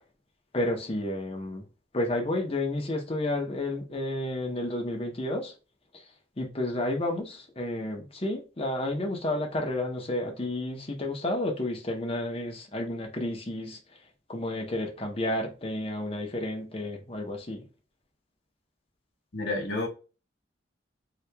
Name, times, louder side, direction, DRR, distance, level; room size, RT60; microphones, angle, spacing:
voice 1, 0.5-1.6 1.9-5.5 5.9-6.0 6.4-13.8 14.3-17.6, left 1 dB, 30° left, 0.8 m, -31 dB
voice 2, 19.3-19.9, left 2 dB, 65° left, 1.0 m, -30 dB
2.8 x 2.4 x 3.4 m
head